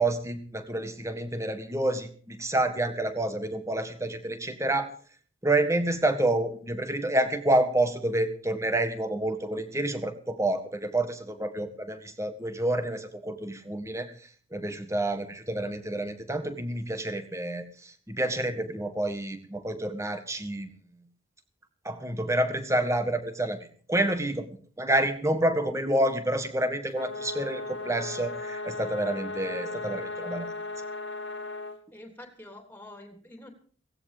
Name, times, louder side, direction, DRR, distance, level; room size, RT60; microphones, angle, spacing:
voice 1, 0.0-4.9 5.4-14.1 14.5-20.7 21.9-23.6 23.9-24.5 24.8-30.5, right 1 dB, 15° right, 9 dB, 1.7 m, -28 dB
sound 1, 26.9-31.8, left 2 dB, 60° left, 2.2 m, -36 dB
voice 2, 31.9-33.5, left 1 dB, 10° left, 5 dB, 3.3 m, -47 dB
17.0 x 16.0 x 5.1 m, 0.43 s
head